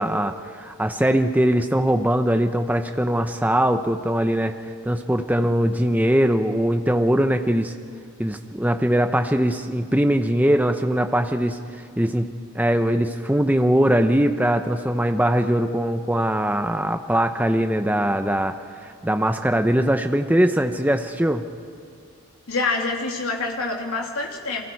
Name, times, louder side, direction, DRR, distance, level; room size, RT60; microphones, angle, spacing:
voice 1, 0.0-4.5 4.9-7.7 8.2-11.6 12.0-12.3 12.5-18.6 18.8-21.4, right 1 dB, 5° right, 6 dB, 0.7 m, -21 dB
voice 2, 22.5-24.6, left 3 dB, 75° left, 1 dB, 2.9 m, -26 dB
29.5 x 23.5 x 4.7 m, 2.3 s
head